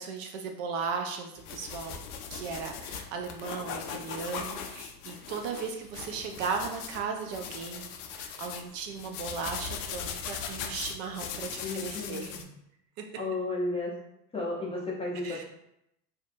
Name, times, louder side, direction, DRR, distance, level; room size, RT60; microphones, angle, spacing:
voice 1, 0.0-2.0 2.3-12.3 13.0-13.1 15.2-15.4, right 5 dB, 55° right, 4 dB, 0.5 m, -36 dB
sound 1, 1.4-12.4, left 7 dB, 65° left, 0.5 m, -39 dB
voice 2, 11.6-12.5 13.2-13.9 14.3-15.4, left 2 dB, 15° left, -5 dB, 0.5 m, -33 dB
2.6 x 2.2 x 2.5 m, 0.80 s
hypercardioid pair, 90°, 49 cm